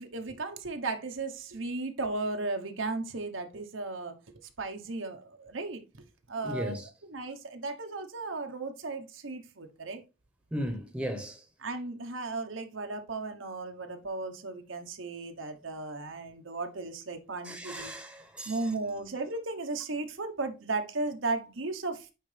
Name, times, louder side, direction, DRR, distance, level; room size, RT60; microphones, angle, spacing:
voice 1, 0.0-4.1 4.6-5.8 6.3-6.8 7.1-10.0 11.6-17.9 18.5-22.1, right 3 dB, 90° right, 1.1 m, -35 dB
voice 2, 6.4-6.9 10.5-11.4 17.4-18.7, equal, 5° right, 0.9 m, -36 dB
9.2 x 3.8 x 3.3 m
head